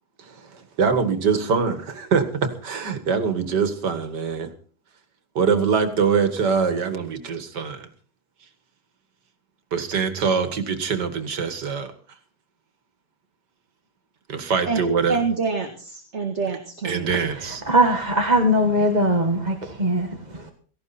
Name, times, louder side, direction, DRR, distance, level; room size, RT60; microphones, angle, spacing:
voice 1, 0.2-4.5 5.4-7.9 9.7-11.9 14.3-15.2 16.8-17.6, right 5 dB, 80° right, 2.4 m, -23 dB
voice 2, 15.1-17.2, right 4 dB, 40° right, 2.2 m, -26 dB
voice 3, 17.1-20.5, equal, 25° right, 1.6 m, -21 dB
17.5 x 16.0 x 4.3 m
omnidirectional pair, 1.8 m